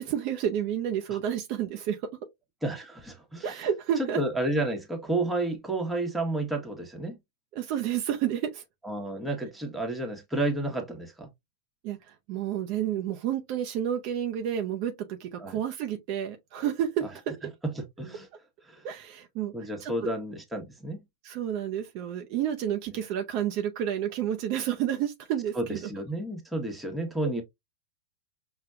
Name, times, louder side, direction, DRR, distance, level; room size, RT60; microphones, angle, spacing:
voice 1, 0.0-2.0 3.4-4.2 7.5-8.6 11.8-17.5 18.8-19.5 19.8-20.1 21.2-25.9, right 10 dB, 50° right, 0.6 m, -30 dB
voice 2, 2.6-3.5 4.0-7.1 8.8-11.3 15.4-15.6 17.6-18.3 18.7-18.8 19.5-21.0 25.6-27.4, right 2 dB, 5° right, 1.1 m, -31 dB
5.1 x 2.2 x 2.3 m
hypercardioid pair, 100°, 0 cm